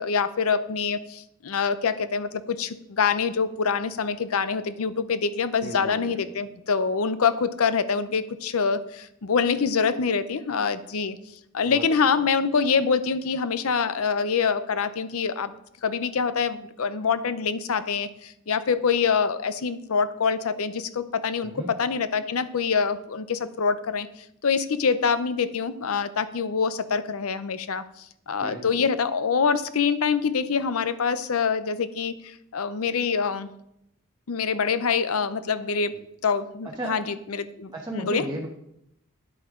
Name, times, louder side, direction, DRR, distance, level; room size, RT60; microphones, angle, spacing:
voice 1, 0.0-11.2 11.5-15.5 15.8-24.1 24.4-33.5 34.3-35.9 36.2-38.3, left 5 dB, 80° left, 13 dB, 0.6 m, -25 dB
voice 2, 5.6-6.2 11.6-11.8 21.4-21.7 28.4-28.9 36.8-37.0 37.7-38.5, right 1 dB, 20° right, -2 dB, 1.0 m, -34 dB
10.0 x 8.4 x 3.7 m, 0.77 s
head